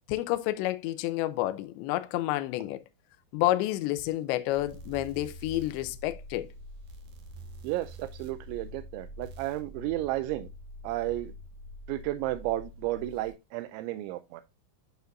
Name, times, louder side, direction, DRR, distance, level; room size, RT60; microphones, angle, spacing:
voice 1, 0.1-2.8 3.3-6.5, left 16 dB, 80° left, 2.9 m, -29 dB
sound 1, 4.5-13.3, equal, 60° right, 2.9 m, -46 dB
voice 2, 7.6-10.5 10.8-11.3 11.9-14.4, right 16 dB, 85° right, 2.9 m, -33 dB
9.2 x 6.7 x 2.4 m
omnidirectional pair, 5.3 m